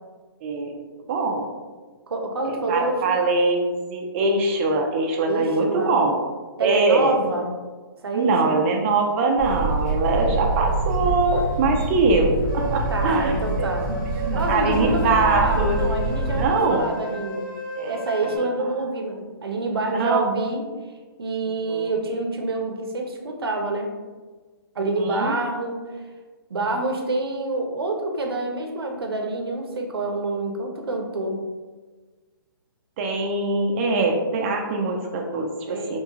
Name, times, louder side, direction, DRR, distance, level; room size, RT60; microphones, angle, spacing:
voice 1, 0.4-0.8 1.1-1.5 2.5-6.2 6.6-7.2 8.1-15.8 16.3-16.8 17.8-18.0 19.9-20.2 21.7-21.9 24.8-25.3 33.0-36.0, right 3 dB, 30° right, 1 dB, 0.3 m, -23 dB
voice 2, 2.1-3.2 5.3-5.9 6.6-7.5 8.0-8.6 12.9-13.9 14.3-17.5 17.8-20.6 21.2-23.9 24.8-25.8 26.5-31.4 35.7-36.0, right 2 dB, 85° right, 3 dB, 0.5 m, -27 dB
sound 1, 9.4-16.5, right 2 dB, 10° left, 1.0 m, -26 dB
sound 2, 12.5-18.4, right 2 dB, 60° left, 1.4 m, -34 dB
2.8 x 2.2 x 2.8 m, 1.4 s
hypercardioid pair, 145°, 12 cm